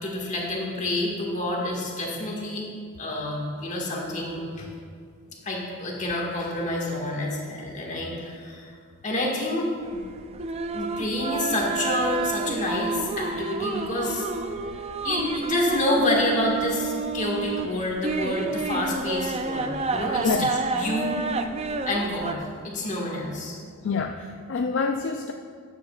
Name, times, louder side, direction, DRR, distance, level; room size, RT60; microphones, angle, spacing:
voice 1, 0.0-2.6 3.0-4.7 5.4-8.7 9.0-10.0 10.7-14.3 15.0-20.4 20.7-21.2 21.9-23.6, left 1 dB, 35° left, -2 dB, 1.7 m, -28 dB
sound 1, 9.8-22.3, right 3 dB, 30° right, 0.4 m, -30 dB
voice 2, 23.8-25.3, left 5 dB, 60° left, 5 dB, 0.4 m, -26 dB
13.0 x 9.4 x 2.4 m, 2.1 s
head